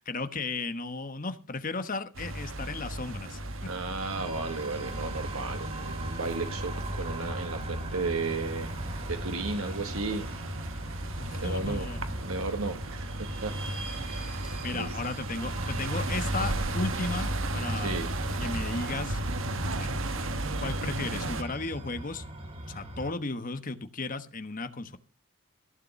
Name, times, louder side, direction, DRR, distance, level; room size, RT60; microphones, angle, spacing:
voice 1, 0.0-3.7 11.3-12.0 14.6-18.0 18.4-19.2 19.7-19.9 20.6-22.2 22.7-25.0, left 3 dB, 40° left, 10 dB, 1.2 m, -35 dB
sound 1, 2.1-21.4, right 1 dB, 70° right, 1.3 m, -34 dB
voice 2, 3.6-10.3 11.4-11.8 12.2-13.5 14.7-15.0 17.7-18.1, right 3 dB, 90° right, 6 dB, 1.4 m, -34 dB
sound 2, 4.0-23.1, right 1 dB, 30° right, 2.6 m, -40 dB
15.5 x 6.9 x 6.9 m, 0.34 s
head